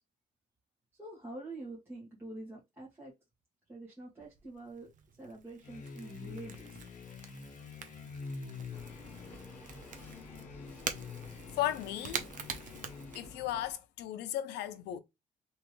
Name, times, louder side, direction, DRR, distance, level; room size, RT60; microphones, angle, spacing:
voice 1, 0.9-3.1 3.7-4.9 5.2-6.8, right 2 dB, 15° right, 1.7 m, -46 dB
Crackle / Crack, 4.2-13.7, right 7 dB, 50° right, 0.7 m, -46 dB
sound 1, 5.6-13.4, left 5 dB, 50° left, 0.8 m, -47 dB
sound 2, 8.7-13.7, left 1 dB, 10° left, 1.3 m, -53 dB
voice 2, 11.5-12.3 13.1-15.0, left 12 dB, 85° left, 0.6 m, -35 dB
3.4 x 3.1 x 3.1 m
cardioid pair, 110°, 17 cm